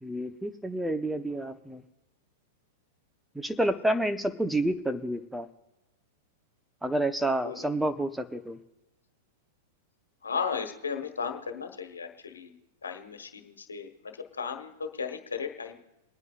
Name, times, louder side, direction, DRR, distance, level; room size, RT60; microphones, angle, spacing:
voice 1, 0.0-1.8 3.3-5.5 6.8-8.6, right 1 dB, 5° right, 9 dB, 1.0 m, -29 dB
voice 2, 7.2-7.7 10.2-12.5 12.8-15.7, left 6 dB, 85° left, 5 dB, 1.4 m, -35 dB
28.5 x 9.6 x 2.5 m, 1.0 s
hypercardioid pair, 105°, 0 cm